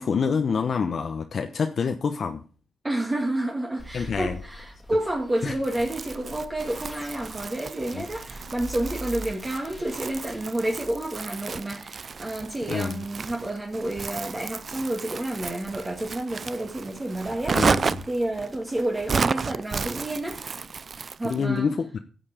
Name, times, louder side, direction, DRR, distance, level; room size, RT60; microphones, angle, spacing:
voice 1, 0.0-2.4 3.9-4.4 5.4-5.5 7.9-8.0 12.7-13.0 17.5-18.0 21.2-22.0, left 5 dB, 60° left, 0.9 m, -27 dB
voice 2, 2.8-17.8 18.1-20.4 21.2-21.7, right 1 dB, 25° right, 2.0 m, -30 dB
sound 1, 3.8-10.4, equal, 5° left, 2.5 m, -43 dB
Crumpling crinkling, 5.6-21.4, right 5 dB, 50° right, 0.4 m, -32 dB
10.0 x 7.1 x 5.0 m
cardioid pair, 60°, 0 cm